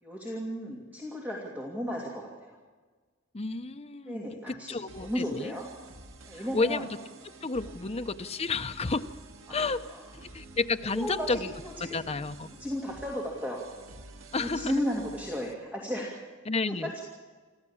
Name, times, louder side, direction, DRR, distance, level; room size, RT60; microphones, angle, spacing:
voice 1, 0.0-2.6 4.1-5.7 6.3-6.9 9.5-10.0 10.9-11.9 12.6-13.6 14.4-16.2 16.6-17.0, equal, 10° right, -3 dB, 2.7 m, -34 dB
voice 2, 3.3-4.2 4.5-5.5 6.3-6.9 7.4-9.1 9.5-9.8 10.2-11.5 11.9-12.5 14.3-14.8 16.5-17.0, left 3 dB, 30° left, 8 dB, 0.7 m, -31 dB
sound 1, 4.9-15.5, right 2 dB, 75° right, 1.8 m, -50 dB
26.0 x 14.5 x 7.2 m, 1.4 s
head